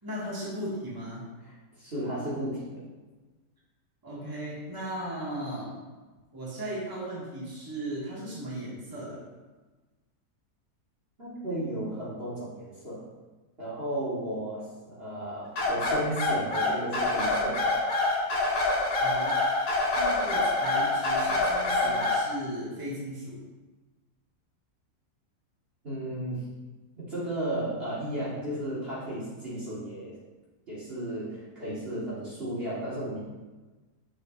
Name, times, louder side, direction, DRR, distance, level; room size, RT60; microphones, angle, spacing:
voice 1, 0.0-1.2 4.0-5.8 6.3-9.2 19.0-19.4 19.9-23.4, right 1 dB, 15° right, -7 dB, 1.9 m, -36 dB
voice 2, 1.4-2.8 11.2-13.1 13.6-17.7 25.8-26.4 27.0-30.2 30.7-33.2, right 1 dB, 35° right, -9 dB, 1.9 m, -34 dB
sound 1, 15.6-22.3, left 2 dB, 60° left, 2.0 m, -26 dB
8.0 x 6.0 x 2.6 m, 1.2 s
omnidirectional pair, 1.7 m